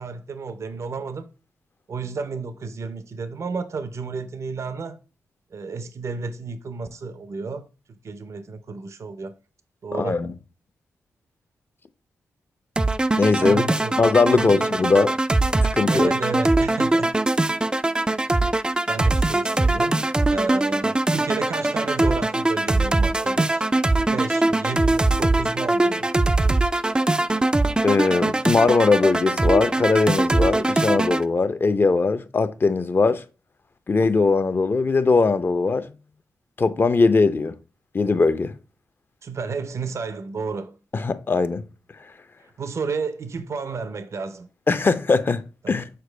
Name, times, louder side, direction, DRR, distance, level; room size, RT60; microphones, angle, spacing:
voice 1, 0.0-1.3 1.9-5.0 5.5-9.3 9.8-10.3 13.4-14.0 14.3-14.6 15.9-17.1 18.9-20.0 20.3-23.6 24.1-26.1 39.2-40.8 42.4-44.5 45.6-45.7, right 4 dB, 55° right, 0.6 m, -32 dB
voice 2, 9.9-10.3 13.2-13.6 14.0-15.1 15.6-16.1 27.8-33.2 33.9-35.9 36.6-37.5 37.9-38.5 40.9-41.6 44.7-45.9, left 4 dB, 40° left, 0.6 m, -20 dB
sound 1, 12.8-31.2, right 2 dB, 15° right, 0.3 m, -21 dB
6.7 x 4.4 x 3.3 m
cardioid pair, 65°, 6 cm